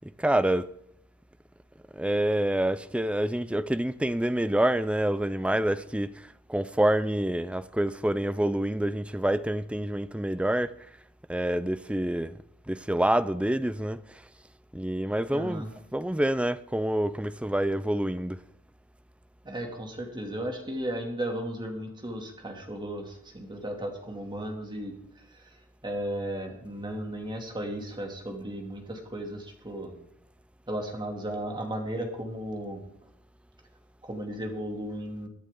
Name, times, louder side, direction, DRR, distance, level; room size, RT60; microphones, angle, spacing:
voice 1, 0.0-0.7 1.9-10.8 11.3-12.4 12.7-14.0 14.7-15.7 15.9-18.4, right 1 dB, 5° right, 0.5 m, -27 dB
voice 2, 15.3-15.7 19.4-25.0 25.8-29.9 30.7-32.8 34.0-35.3, right 1 dB, 20° right, 2.5 m, -35 dB
22.5 x 9.4 x 3.8 m
head